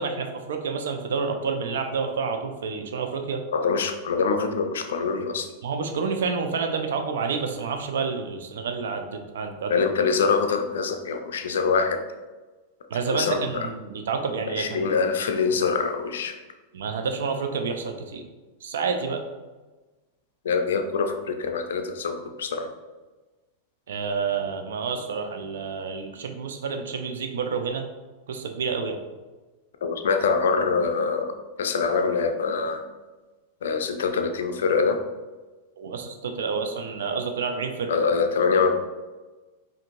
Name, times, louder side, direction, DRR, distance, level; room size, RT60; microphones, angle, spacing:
voice 1, 0.0-3.4 5.6-9.7 12.9-14.9 16.7-18.2 18.6-19.2 23.9-27.9 28.3-29.0 35.8-37.9, right 5 dB, 60° right, 5 dB, 0.4 m, -29 dB
voice 2, 3.5-5.5 9.7-12.0 13.1-13.7 14.5-16.4 20.4-22.7 29.8-31.3 31.6-32.8 33.6-35.0 37.9-38.7, left 5 dB, 60° left, 6 dB, 0.4 m, -24 dB
5.0 x 2.6 x 2.6 m, 1.2 s
figure-of-eight pair, 90°, 0 cm